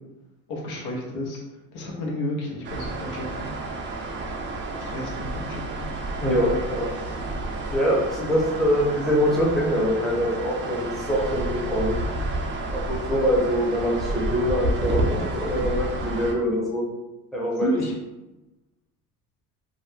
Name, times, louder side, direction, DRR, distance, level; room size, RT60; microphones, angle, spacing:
voice 1, 0.5-1.4 1.7-3.5 4.9-5.8 8.2-8.3 17.6-17.9, equal, 80° left, -1 dB, 0.8 m, -31 dB
sound 1, 2.6-16.3, right 2 dB, 35° right, 0.4 m, -30 dB
voice 2, 6.2-6.9 7.7-11.9 12.7-16.8 17.3-17.7, equal, ahead, -5 dB, 0.7 m, -24 dB
2.4 x 2.1 x 3.1 m, 1.0 s
supercardioid pair, 105°, 37 cm